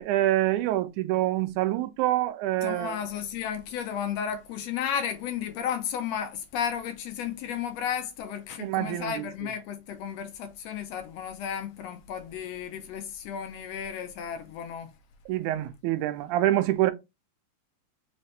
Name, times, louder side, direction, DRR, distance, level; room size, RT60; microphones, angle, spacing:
voice 1, 0.0-3.0 8.6-9.2 15.3-16.9, right 15 dB, 85° right, 2.1 m, -26 dB
voice 2, 2.6-14.9, left 8 dB, 75° left, 1.6 m, -33 dB
5.0 x 2.8 x 3.3 m
omnidirectional pair, 3.4 m